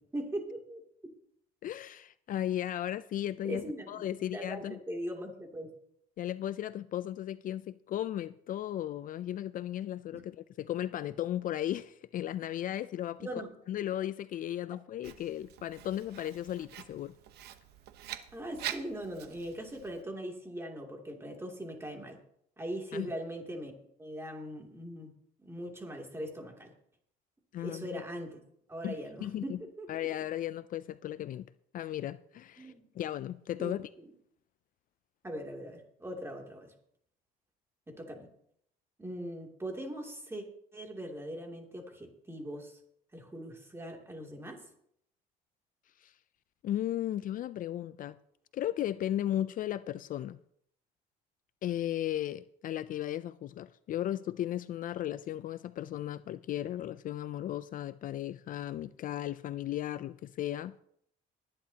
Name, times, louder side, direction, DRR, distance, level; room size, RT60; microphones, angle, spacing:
voice 1, 0.1-0.8 3.4-5.7 10.1-10.2 13.2-13.5 18.3-22.2 22.6-25.1 25.4-26.7 27.6-28.4 28.7-29.9 32.6-32.9 33.6-33.8 35.2-36.7 37.9-38.3 39.0-40.4 40.7-42.8 43.1-44.6, right 1 dB, 15° right, 2.8 m, -40 dB
voice 2, 1.6-4.8 6.2-13.3 13.7-17.1 22.9-23.1 27.5-28.0 28.8-29.6 29.9-31.5 31.7-33.9 46.0-46.1 46.6-48.2 48.5-50.4 51.6-60.7, left 12 dB, 55° left, 0.4 m, -35 dB
Writing, 15.0-20.0, right 11 dB, 75° right, 1.0 m, -45 dB
20.0 x 10.5 x 2.9 m
cardioid pair, 110°, 17 cm